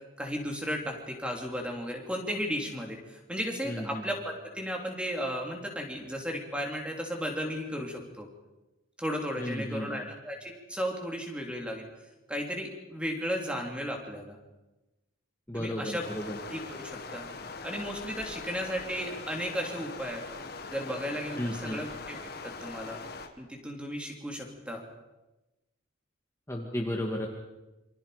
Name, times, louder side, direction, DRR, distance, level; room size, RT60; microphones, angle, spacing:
voice 1, 0.2-8.3 9.0-11.9 12.3-14.4 15.5-16.0 16.5-17.3 17.6-20.2 20.7-22.2 22.4-23.0 23.4-24.8, equal, 5° right, 1 dB, 3.3 m, -35 dB
voice 2, 3.7-4.0 9.4-10.0 15.5-16.3 21.4-21.8 26.5-27.3, equal, 15° left, -1 dB, 2.3 m, -33 dB
Stream, 16.0-23.3, left 3 dB, 50° left, 2.0 m, -42 dB
28.0 x 25.5 x 5.2 m, 1.0 s
head